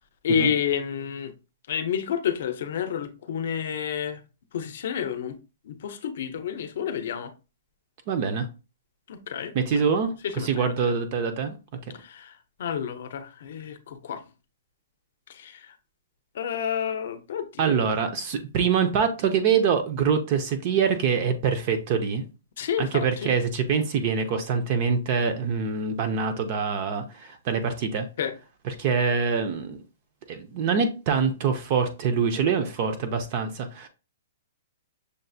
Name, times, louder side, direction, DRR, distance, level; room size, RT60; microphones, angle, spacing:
voice 1, 0.2-1.3 1.7-4.2 4.5-5.4 5.6-7.3 9.1-9.8 10.2-10.9 11.9-14.2 15.3-15.8 16.3-17.9 22.6-23.3 28.2-28.3, left 8 dB, 50° left, 0.6 m, -30 dB
voice 2, 8.1-8.5 9.5-10.1 10.4-11.6 17.6-22.2 22.8-28.1 28.7-29.8 30.3-33.9, right 6 dB, 30° right, 0.4 m, -25 dB
6.4 x 2.4 x 2.6 m
hypercardioid pair, 175°, 0 cm